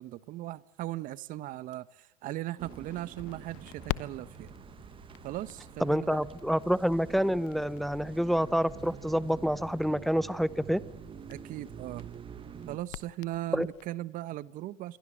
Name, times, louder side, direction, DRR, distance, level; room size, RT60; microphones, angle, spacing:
voice 1, 0.0-4.5 5.2-6.2 11.3-12.1 12.7-15.0, right 15 dB, 50° right, 1.0 m, -38 dB
sound 1, 2.6-12.8, right 8 dB, 30° right, 1.2 m, -47 dB
Crackle, 2.7-13.9, left 21 dB, 60° left, 1.0 m, -46 dB
voice 2, 5.8-10.8 13.5-13.7, equal, ahead, 0.8 m, -28 dB
27.5 x 23.0 x 7.6 m
hypercardioid pair, 90°, 18 cm